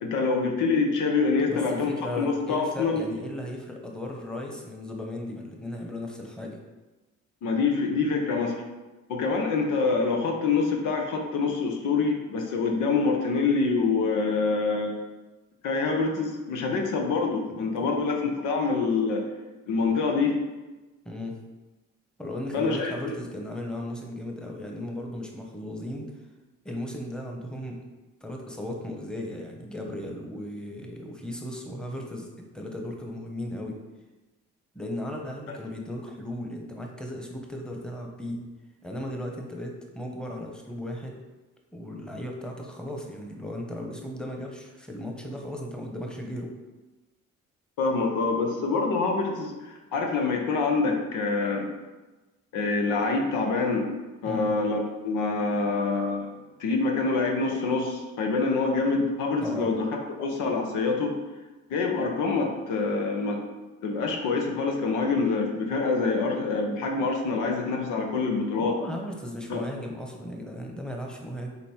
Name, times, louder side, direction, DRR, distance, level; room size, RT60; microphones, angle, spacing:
voice 1, 0.0-3.0 7.4-8.6 9.1-15.0 15.6-19.2 19.7-20.4 22.5-22.9 47.8-51.7 52.5-53.9 54.2-56.3 56.6-59.9 60.2-61.1 61.7-63.4 63.8-68.8 69.5-69.6, left 4 dB, 85° left, 1 dB, 1.1 m, -26 dB
voice 2, 1.5-6.6 17.5-17.9 21.0-21.4 22.2-26.1 26.6-27.8 28.2-32.3 32.5-33.8 34.7-38.4 38.8-41.2 41.7-46.5 54.2-54.5 59.4-59.7 68.7-71.5, left 1 dB, 5° left, 1 dB, 1.1 m, -36 dB
5.3 x 4.1 x 4.4 m, 1.2 s
cardioid pair, 90°, 30 cm